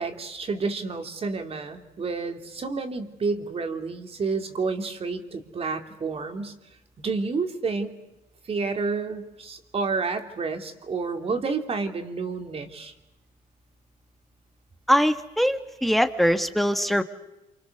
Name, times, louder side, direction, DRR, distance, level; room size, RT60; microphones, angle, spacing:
voice 1, 0.0-6.5 7.0-7.9 8.4-12.9, right 4 dB, 35° right, 6 dB, 3.0 m, -30 dB
voice 2, 14.9-17.0, equal, ahead, 8 dB, 1.7 m, -22 dB
27.5 x 26.0 x 6.8 m, 0.99 s
cardioid pair, 110°, 17 cm